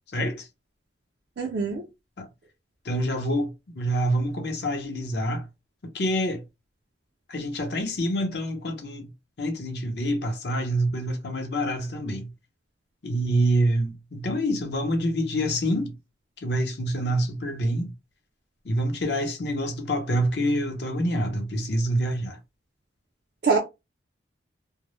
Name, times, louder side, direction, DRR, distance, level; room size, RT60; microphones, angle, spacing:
voice 1, 0.1-0.5 2.2-2.3 2.8-5.5 5.9-6.4 7.3-9.1 9.4-12.3 13.0-16.0 16.4-17.9 18.6-22.4, equal, 70° left, 0.7 m, -26 dB
voice 2, 1.4-1.8 23.4-23.6, right 4 dB, 65° right, 0.4 m, -23 dB
2.1 x 2.0 x 3.0 m
head